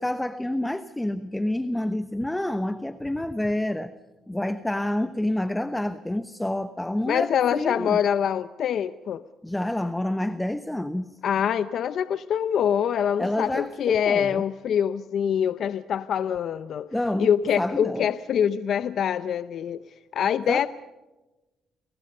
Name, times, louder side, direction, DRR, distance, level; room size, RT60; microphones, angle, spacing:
voice 1, 0.0-3.9 4.3-8.0 9.4-11.2 13.2-14.4 16.9-17.3 17.6-18.1 20.5-20.7, left 1 dB, 10° left, 11 dB, 1.0 m, -28 dB
voice 2, 7.1-9.2 11.2-16.9 17.2-19.8 20.1-20.7, left 8 dB, 65° left, 13 dB, 0.7 m, -24 dB
30.0 x 22.0 x 5.5 m, 1.1 s
cardioid pair, 100°, 0 cm